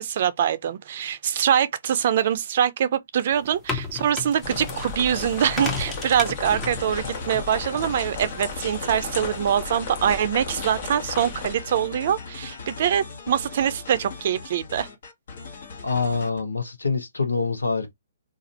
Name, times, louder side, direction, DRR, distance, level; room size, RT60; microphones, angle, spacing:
voice 1, 0.0-14.9, right 9 dB, 50° right, 0.5 m, -24 dB
sound 1, 3.3-9.5, left 4 dB, 15° left, 0.7 m, -35 dB
sound 2, 4.4-11.5, left 4 dB, 40° left, 1.1 m, -35 dB
sound 3, 6.6-16.4, left 4 dB, 60° left, 1.2 m, -39 dB
voice 2, 15.8-17.9, left 4 dB, 85° left, 0.8 m, -25 dB
2.5 x 2.4 x 4.1 m
figure-of-eight pair, 135°, 0 cm